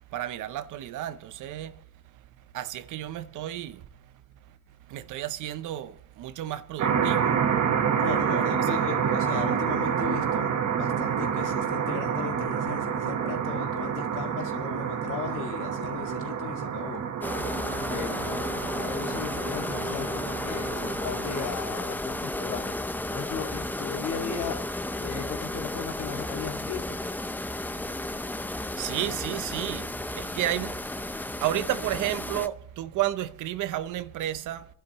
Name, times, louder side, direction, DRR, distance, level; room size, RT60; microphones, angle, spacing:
voice 1, 0.1-1.8 2.5-3.9 4.9-7.4 8.6-8.9 28.7-34.7, right 13 dB, 85° right, 0.8 m, -32 dB
sound 1, 6.8-21.5, right 7 dB, 65° right, 1.3 m, -28 dB
voice 2, 8.0-17.0 17.9-24.6 25.0-27.0, left 7 dB, 85° left, 2.1 m, -37 dB
sound 2, 17.2-32.5, left 1 dB, 5° left, 0.5 m, -33 dB
28.5 x 11.0 x 3.0 m
cardioid pair, 90°, 30 cm